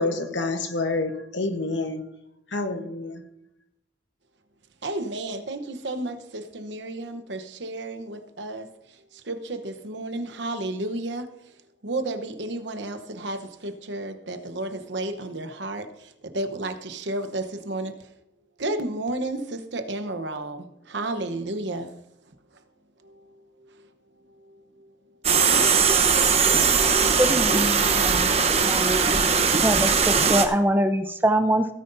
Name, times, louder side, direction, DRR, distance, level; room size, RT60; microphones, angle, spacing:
voice 1, 0.0-2.0 2.5-3.2, left 2 dB, 75° left, 1.2 m, -28 dB
voice 2, 4.8-8.7 9.1-11.3 11.8-18.1 18.6-21.9 23.0-23.9 24.4-24.9, right 2 dB, 70° right, 1.0 m, -32 dB
sound 1, 25.2-30.5, right 5 dB, 35° right, 0.9 m, -20 dB
voice 3, 27.2-28.4 28.6-29.0 29.6-31.7, right 1 dB, 10° right, 0.6 m, -23 dB
17.0 x 9.4 x 2.7 m
head